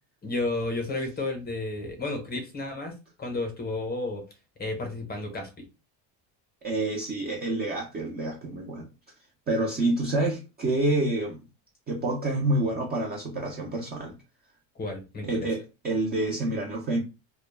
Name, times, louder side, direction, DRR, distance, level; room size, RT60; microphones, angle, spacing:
voice 1, 0.2-2.9 3.2-4.3 4.6-5.7 14.8-15.5, left 2 dB, 20° left, 0.6 m, -32 dB
voice 2, 6.6-8.9 9.5-11.4 11.9-14.2 15.2-17.0, right 2 dB, 25° right, 0.3 m, -28 dB
2.1 x 2.1 x 3.1 m
cardioid pair, 145°, 47 cm